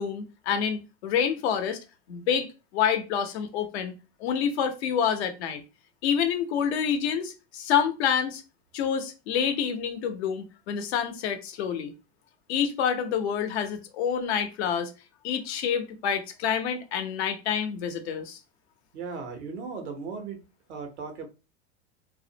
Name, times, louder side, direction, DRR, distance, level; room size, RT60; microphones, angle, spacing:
voice 1, 0.0-1.8 2.1-2.5 2.7-3.9 4.2-5.6 6.0-8.4 8.7-11.9 12.5-14.9 15.2-18.4, left 7 dB, 75° left, 0.7 m, -27 dB
voice 2, 18.9-20.4 20.7-21.3, right 5 dB, 90° right, 0.8 m, -36 dB
2.4 x 2.1 x 2.7 m
hypercardioid pair, 100°, 33 cm